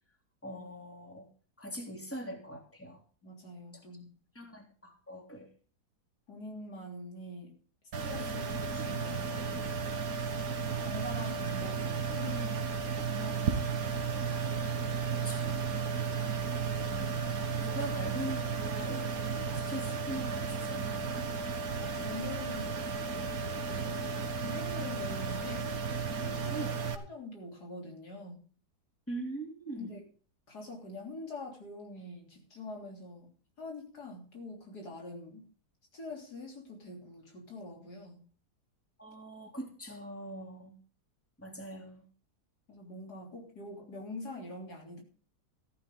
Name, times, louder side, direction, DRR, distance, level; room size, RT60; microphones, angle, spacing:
voice 1, 0.4-1.3 1.6-3.0 4.3-5.5 15.1-15.6 16.9-19.1 19.4-21.3 26.3-26.7 29.1-29.9 39.0-40.7 41.4-42.1, right 1 dB, 10° left, 2 dB, 3.3 m, -42 dB
voice 2, 3.2-4.2 6.3-7.6 8.0-9.6 10.7-12.7 13.0-13.8 21.8-22.8 23.6-25.7 26.2-28.5 29.8-30.0 30.5-33.3 33.6-35.5 35.9-38.2 42.7-45.0, left 2 dB, 75° left, 1 dB, 4.0 m, -44 dB
sound 1, 7.9-27.0, right 5 dB, 60° right, 1.8 m, -34 dB
14.5 x 11.5 x 3.8 m, 0.39 s
omnidirectional pair, 1.7 m